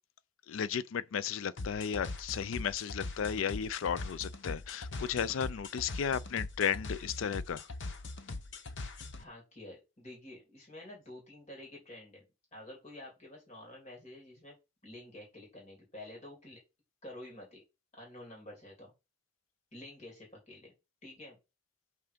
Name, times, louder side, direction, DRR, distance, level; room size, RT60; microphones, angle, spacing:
voice 1, 0.5-7.7, left 7 dB, 80° left, 0.4 m, -34 dB
sound 1, 1.6-9.2, left 2 dB, 65° left, 0.9 m, -41 dB
voice 2, 9.2-12.2 12.5-14.5 14.8-16.6 17.0-17.6 18.0-18.9 19.7-20.7 21.0-21.4, left 1 dB, 35° left, 3.4 m, -49 dB
5.7 x 4.7 x 5.1 m
head